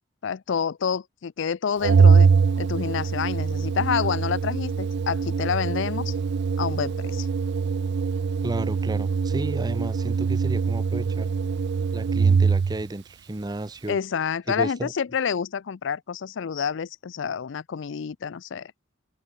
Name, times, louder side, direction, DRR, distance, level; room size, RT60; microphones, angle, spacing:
voice 1, 0.2-2.3 2.6-6.1 6.6-7.3 13.9-18.7, left 6 dB, 65° left, 0.4 m, -28 dB
Organ, 1.8-12.8, right 5 dB, 60° right, 0.4 m, -23 dB
voice 2, 8.4-11.3 11.9-14.0 14.5-14.9, right 2 dB, 20° right, 0.7 m, -32 dB
open air
head